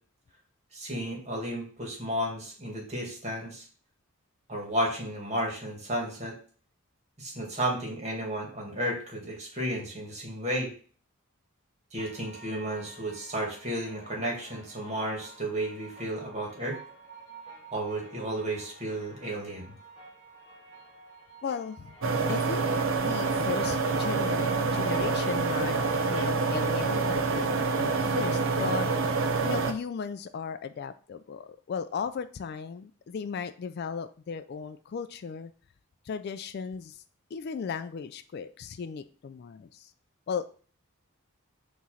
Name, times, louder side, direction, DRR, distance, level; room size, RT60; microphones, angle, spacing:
voice 1, 0.7-3.6 4.5-6.3 7.2-10.7 11.9-16.8 17.7-19.6, right 1 dB, 30° right, -1 dB, 2.0 m, -33 dB
sound 1, 12.0-28.0, right 3 dB, 20° left, 2.4 m, -50 dB
voice 2, 21.4-21.9 22.3-22.7 23.0-27.5 27.8-28.9 29.4-35.5 36.1-37.0 37.3-39.9 40.3-40.5, left 6 dB, 45° left, 11 dB, 0.3 m, -36 dB
sound 2, 22.0-29.7, right 4 dB, 60° right, 0.7 m, -27 dB
6.0 x 3.1 x 5.5 m, 0.42 s
head